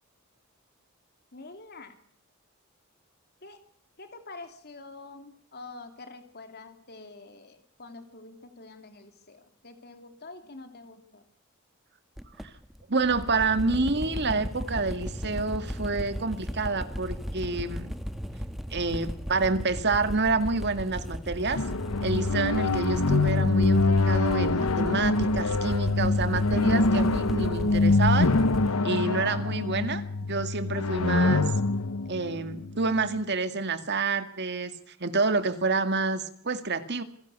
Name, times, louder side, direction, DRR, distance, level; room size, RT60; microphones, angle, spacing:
voice 1, 1.3-1.9 3.4-3.6 4.0-11.2, left 3 dB, 50° left, 7 dB, 2.8 m, -46 dB
sound 1, 12.2-28.7, equal, ahead, 1.4 m, -36 dB
voice 2, 12.9-17.9 18.7-21.6 22.0-28.3 28.8-31.5 32.1-37.0, right 3 dB, 50° right, 10 dB, 2.1 m, -28 dB
sound 2, 21.6-33.2, left 3 dB, 80° left, 1.0 m, -25 dB
27.0 x 16.0 x 8.2 m, 0.64 s
head